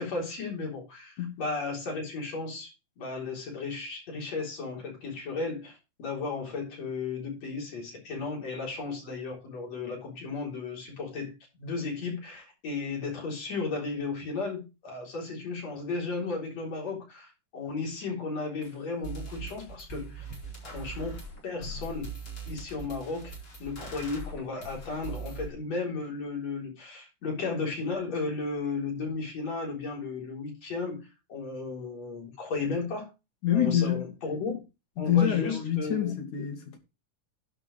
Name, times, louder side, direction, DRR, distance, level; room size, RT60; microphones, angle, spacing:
voice 1, 0.0-2.7 3.0-20.2 20.6-21.2 21.4-22.1 22.5-23.3 23.6-33.1 33.5-34.6 35.0-36.1, left 4 dB, 60° left, 5.0 m, -34 dB
sound 1, 18.6-18.7 19.0-25.5, right 4 dB, 35° left, 5.0 m, -41 dB
voice 2, 33.4-34.1 35.0-36.8, left 10 dB, 75° left, 3.6 m, -26 dB
11.0 x 5.2 x 6.3 m
omnidirectional pair, 3.5 m